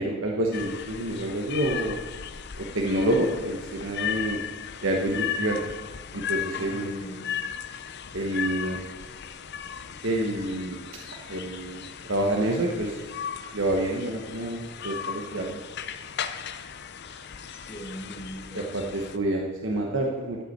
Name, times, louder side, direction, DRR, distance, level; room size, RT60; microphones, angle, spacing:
voice 1, 0.0-2.0 2.6-4.4 4.8-5.6 6.1-7.0 8.1-8.8 10.0-10.8 11.1-13.0 13.5-15.6 18.7-20.4, right 1 dB, 55° right, 0 dB, 1.1 m, -28 dB
sound 1, 0.5-19.2, left 8 dB, 50° left, 0.6 m, -36 dB
voice 2, 6.5-7.3 17.0-19.2, equal, 25° left, -1 dB, 1.8 m, -42 dB
13.0 x 5.9 x 7.9 m, 1.3 s
head